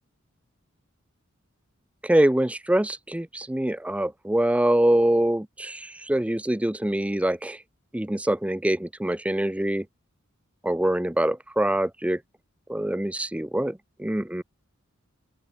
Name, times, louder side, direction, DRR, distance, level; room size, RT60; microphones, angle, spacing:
voice 1, 2.0-7.6 7.9-9.8 10.6-12.2 12.7-14.4, right 1 dB, 5° right, 0.4 m, -24 dB
open air
head